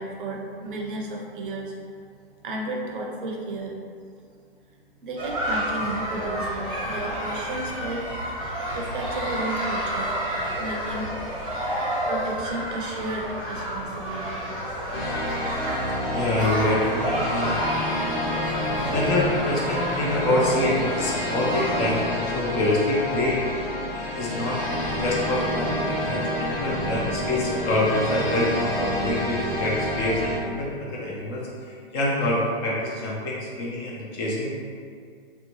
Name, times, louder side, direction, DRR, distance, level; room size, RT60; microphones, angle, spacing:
voice 1, 0.0-1.8 2.4-3.7 5.0-10.1 10.6-11.1 12.1-14.5, right 2 dB, 60° right, 0 dB, 0.6 m, -33 dB
sound 1, 5.2-22.0, equal, 15° right, 0.7 m, -30 dB
sound 2, 14.9-30.4, left 1 dB, 45° left, 1.2 m, -28 dB
voice 2, 14.9-15.3 16.1-17.6 18.8-23.7 23.9-34.6, left 1 dB, 25° left, -4 dB, 0.4 m, -26 dB
2.8 x 2.1 x 2.9 m, 2.2 s
hypercardioid pair, 120°, 30 cm